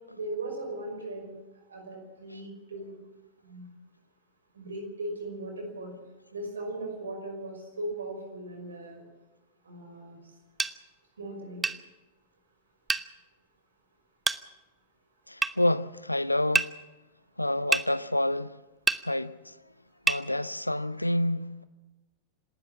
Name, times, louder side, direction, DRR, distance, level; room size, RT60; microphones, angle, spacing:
voice 1, 0.1-1.4 1.7-3.0 3.4-3.7 4.5-5.9 6.3-9.0 9.6-10.2 11.2-11.7, right 2 dB, 70° right, 5.5 m, -38 dB
sound 1, 10.6-10.8 11.6-11.8 12.9-13.1 14.3-14.4 15.4-15.6 16.6-16.7 17.7-17.9 18.9-19.0 20.1-20.2, right 4 dB, 15° right, 0.8 m, -26 dB
voice 2, 15.3-16.7 17.4-18.6 19.0-19.6 20.1-21.6, left 1 dB, 85° left, 0.6 m, -28 dB
27.0 x 13.0 x 7.3 m
figure-of-eight pair, 90°, 0 cm